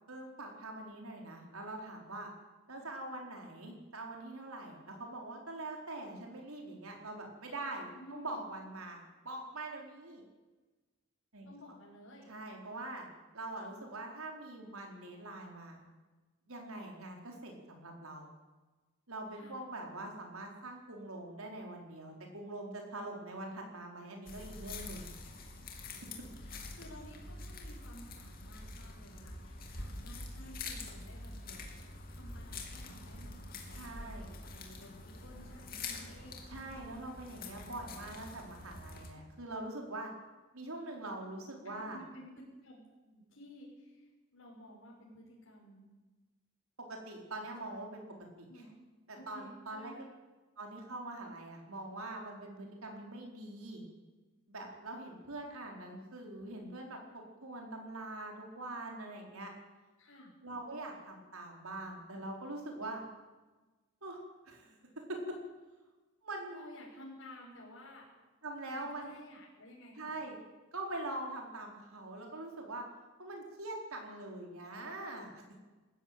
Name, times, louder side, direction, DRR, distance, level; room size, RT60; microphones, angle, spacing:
voice 1, 0.1-2.3 2.7-10.2 11.3-11.5 12.3-13.1 13.3-15.8 16.5-18.3 19.1-25.1 33.7-34.3 36.5-40.1 40.5-42.0 46.8-48.0 48.4-48.5 49.1-49.9 50.6-53.8 54.5-59.5 60.4-63.0 64.0-64.8 65.1-65.4 66.2-66.7 68.4-69.2 69.9-70.4 70.7-72.9 73.2-75.4, right 2 dB, 85° right, 1 dB, 4.6 m, -43 dB
voice 2, 7.9-8.5 11.5-12.3 19.3-19.6 25.4-25.5 25.9-26.0 26.4-33.3 33.6-36.4 41.6-42.3 42.6-45.8 48.5-48.8 49.1-50.1 60.0-60.3 66.5-68.1 68.7-70.2, equal, 70° left, -4 dB, 5.9 m, -54 dB
sound 1, 24.2-39.1, left 3 dB, 45° left, 3.2 m, -46 dB
20.0 x 15.0 x 9.0 m, 1.2 s
head